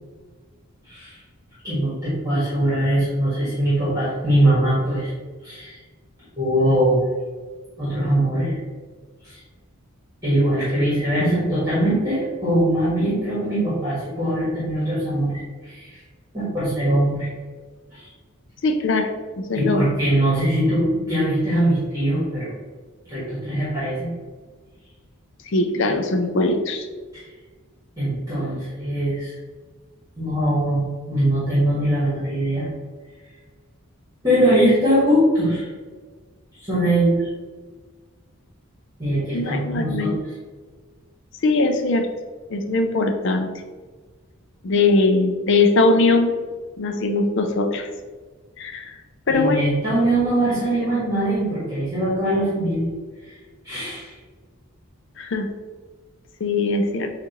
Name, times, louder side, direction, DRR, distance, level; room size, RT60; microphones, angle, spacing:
voice 1, 0.8-1.2 1.6-5.1 5.4-5.8 6.4-7.0 7.8-8.6 9.2-9.4 10.2-16.0 16.3-17.3 17.9-18.0 19.5-22.5 23.1-24.1 25.8-25.9 27.1-27.2 28.0-29.3 30.1-32.7 34.2-35.7 36.6-37.3 39.0-40.1 49.3-52.8 53.2-53.3 53.6-54.1, right 1 dB, 15° right, -9 dB, 1.5 m, -21 dB
voice 2, 18.6-19.1 19.4-19.9 25.5-26.9 39.3-40.2 41.4-42.1 42.5-43.5 44.6-46.3 46.8-47.9 48.6-48.9 49.3-49.6 55.2-55.5 56.4-57.1, left 3 dB, 60° left, 5 dB, 0.4 m, -20 dB
7.1 x 2.5 x 3.0 m, 1.4 s
head